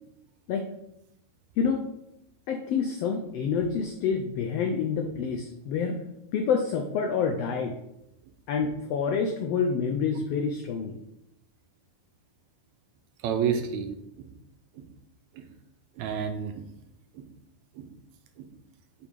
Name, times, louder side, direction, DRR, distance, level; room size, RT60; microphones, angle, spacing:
voice 1, 1.6-1.9 2.5-6.0 6.3-7.7 8.5-11.0, left 6 dB, 85° left, 4 dB, 1.4 m, -27 dB
voice 2, 13.2-13.9 14.2-14.3 14.8-14.9 15.4-15.5 16.0-16.7 17.2-17.3 17.8-17.9 18.4-18.5, right 7 dB, 80° right, 6 dB, 1.8 m, -30 dB
8.4 x 4.7 x 3.5 m, 0.86 s
omnidirectional pair, 3.5 m